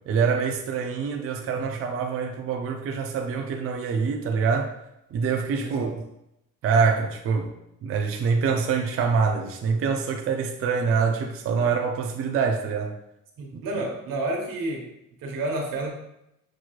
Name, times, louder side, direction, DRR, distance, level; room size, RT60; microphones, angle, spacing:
voice 1, 0.1-4.7 5.1-6.0 6.6-7.5 7.8-12.9 13.5-13.8, right 5 dB, 45° right, 2 dB, 0.4 m, -25 dB
voice 2, 5.6-5.9 13.4-14.9 15.2-15.9, right 2 dB, 90° right, 1 dB, 1.1 m, -30 dB
6.0 x 3.0 x 2.3 m, 0.83 s
cardioid pair, 150°, 33 cm